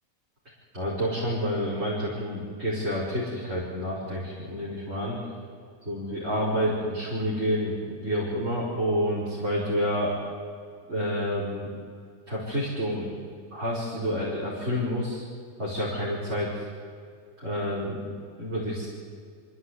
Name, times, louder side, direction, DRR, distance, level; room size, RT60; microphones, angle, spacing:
voice 1, 0.7-5.2 5.9-10.1 10.9-11.7 12.3-13.1 13.5-15.2 15.6-16.6 17.4-18.1 18.4-18.9, equal, 50° right, -7 dB, 6.0 m, -29 dB
26.0 x 16.0 x 9.6 m, 2.2 s
omnidirectional pair, 1.5 m